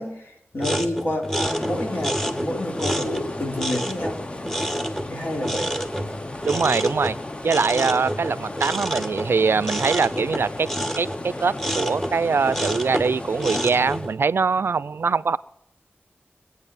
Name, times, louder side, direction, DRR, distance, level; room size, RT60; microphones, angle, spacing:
voice 1, 0.0-4.3 5.1-5.7, left 1 dB, 65° left, -1 dB, 3.8 m, -29 dB
sound 1, 0.6-14.2, equal, 5° left, 1.0 m, -29 dB
sound 2, 1.2-14.2, left 2 dB, 25° left, 0.8 m, -35 dB
voice 2, 6.5-7.2 7.4-10.7 11.0-15.4, right 5 dB, 75° right, 17 dB, 0.4 m, -23 dB
22.0 x 8.6 x 5.7 m, 0.72 s
wide cardioid pair, 95°, 4 cm